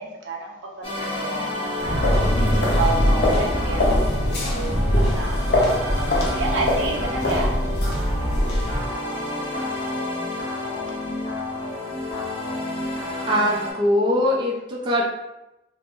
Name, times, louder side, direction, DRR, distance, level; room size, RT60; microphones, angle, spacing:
voice 1, 0.0-7.6, right 3 dB, 85° right, -1 dB, 0.6 m, -31 dB
sound 1, 0.8-13.7, left 2 dB, 30° left, 0.9 m, -30 dB
sound 2, 1.8-8.8, left 1 dB, 55° left, 0.6 m, -22 dB
voice 2, 13.3-15.0, left 1 dB, 25° right, -4 dB, 0.4 m, -21 dB
3.5 x 2.1 x 2.5 m, 0.94 s
head